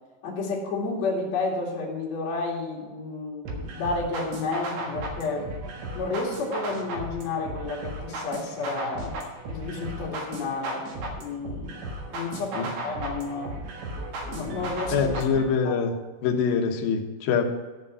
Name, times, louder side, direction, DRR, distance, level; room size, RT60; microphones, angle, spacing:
voice 1, 0.2-5.5 5.9-9.2 9.5-10.9 11.2-13.6 14.2-15.1 15.6-15.8, left 3 dB, 45° left, -2 dB, 2.7 m, -31 dB
sound 1, 3.5-15.5, right 2 dB, 70° right, 3.6 m, -35 dB
voice 2, 14.9-15.9 16.2-17.6, left 6 dB, 70° left, 1 dB, 2.5 m, -24 dB
14.0 x 5.4 x 6.2 m, 1.3 s
omnidirectional pair, 5.5 m